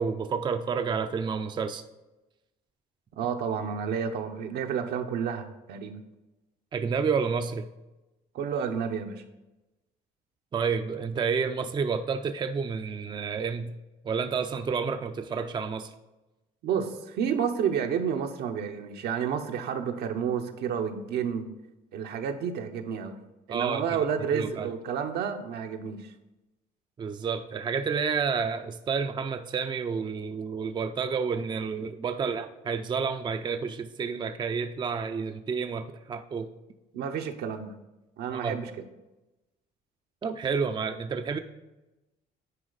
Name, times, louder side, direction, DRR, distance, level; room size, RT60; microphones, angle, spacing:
voice 1, 0.0-1.8 6.7-7.7 10.5-13.8 14.0-15.9 23.5-24.0 24.3-24.7 27.0-36.5 38.3-38.6 40.2-41.4, right 5 dB, 25° right, 8 dB, 0.4 m, -30 dB
voice 2, 3.2-5.9 8.3-9.2 16.6-21.4 21.9-23.2 23.5-26.1 36.9-37.7 38.2-38.7, right 7 dB, 75° right, 5 dB, 0.9 m, -30 dB
9.8 x 4.4 x 3.9 m, 1.0 s
cardioid pair, 110°, 17 cm